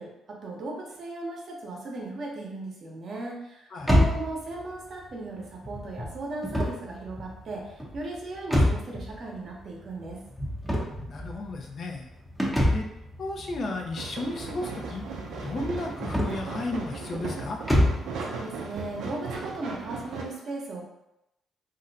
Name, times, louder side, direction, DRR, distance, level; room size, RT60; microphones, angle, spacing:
voice 1, 0.0-10.2 18.2-20.8, right 2 dB, 55° right, -1 dB, 0.9 m, -37 dB
sound 1, 3.8-18.1, equal, 5° left, 0.7 m, -29 dB
voice 2, 11.1-12.1 12.7-12.9 13.2-15.0 15.4-17.6, left 2 dB, 50° left, 2 dB, 0.6 m, -34 dB
sound 2, 14.0-20.2, right 4 dB, 80° right, 0.5 m, -37 dB
2.6 x 2.1 x 3.9 m, 0.87 s
cardioid pair, 90°, 0 cm